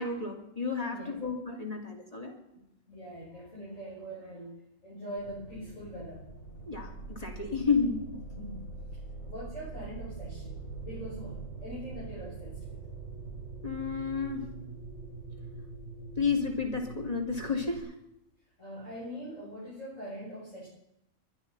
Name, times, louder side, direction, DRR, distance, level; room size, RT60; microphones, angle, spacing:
voice 1, 0.0-2.4 6.7-8.0 13.6-14.5 16.1-17.9, left 5 dB, 30° left, 3 dB, 3.2 m, -31 dB
voice 2, 2.9-4.5 4.8-6.2 8.4-8.6 9.3-12.8 18.6-20.7, equal, 70° left, -7 dB, 6.7 m, -42 dB
sound 1, 5.2-17.8, right 3 dB, 45° left, 5.3 m, -43 dB
24.0 x 10.5 x 5.6 m, 0.83 s
omnidirectional pair, 1.4 m